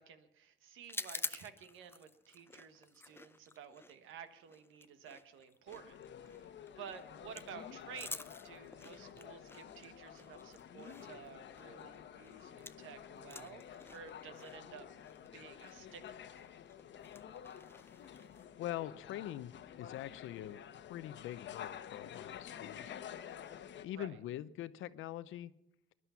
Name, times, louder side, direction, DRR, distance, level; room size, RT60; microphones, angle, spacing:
voice 1, 0.0-6.0 6.2-14.9 15.3-16.6 23.9-24.2, right 7 dB, 85° right, 10 dB, 1.4 m, -53 dB
sound 1, 0.8-12.9 13.2-18.5, left 2 dB, 10° left, 0.6 m, -49 dB
sound 2, 5.7-23.9, left 9 dB, 65° left, 1.0 m, -50 dB
voice 2, 18.6-23.0 23.8-25.5, left 13 dB, 85° left, 15 dB, 0.7 m, -43 dB
21.0 x 11.0 x 5.7 m, 0.83 s
cardioid pair, 90°, 20 cm